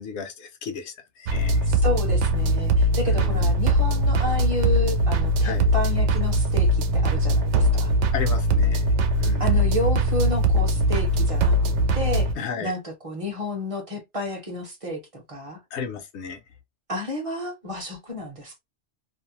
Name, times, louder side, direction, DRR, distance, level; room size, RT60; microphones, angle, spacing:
voice 1, 0.0-1.7 3.1-3.5 5.4-5.7 8.1-8.9 9.2-9.5 12.4-12.7 15.7-16.4, left 6 dB, 75° left, 0.9 m, -34 dB
sound 1, 1.3-12.3, right 1 dB, 75° right, 0.9 m, -21 dB
voice 2, 1.7-7.9 9.4-11.6 11.9-12.3 12.6-15.6 16.9-18.6, left 1 dB, 35° right, 0.7 m, -31 dB
2.6 x 2.1 x 2.8 m
omnidirectional pair, 1.2 m